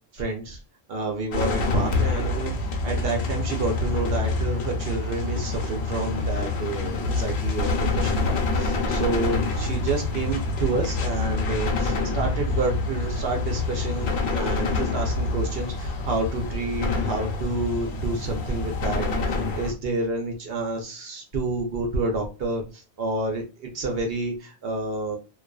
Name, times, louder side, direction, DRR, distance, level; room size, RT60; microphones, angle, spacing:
voice 1, 0.1-0.6 0.9-25.2, right 2 dB, 70° right, 2 dB, 0.8 m, -29 dB
sound 1, 1.3-19.7, left 3 dB, 90° left, 0.9 m, -26 dB
2.4 x 2.3 x 2.3 m, 0.31 s
omnidirectional pair, 1.1 m